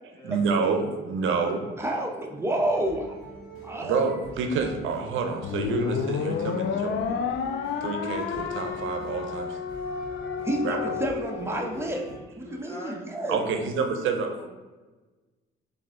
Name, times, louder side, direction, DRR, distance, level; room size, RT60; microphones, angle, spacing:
voice 1, 0.2-1.6 3.8-7.2 7.8-9.6 10.6-10.9 13.3-14.3, right 5 dB, 80° right, 6 dB, 0.6 m, -28 dB
voice 2, 1.2-1.6 11.5-13.6 14.3-14.5, left 2 dB, 15° left, -1 dB, 1.1 m, -43 dB
voice 3, 1.8-3.2 3.6-4.1 10.4-12.0 12.3-13.4, right 1 dB, 10° right, 1 dB, 0.7 m, -29 dB
sound 1, 2.5-12.2, right 2 dB, 85° left, 1.2 m, -46 dB
sound 2, 5.4-11.9, left 7 dB, 70° left, 0.4 m, -31 dB
4.7 x 2.6 x 3.6 m, 1.2 s
cardioid pair, 90°, 20 cm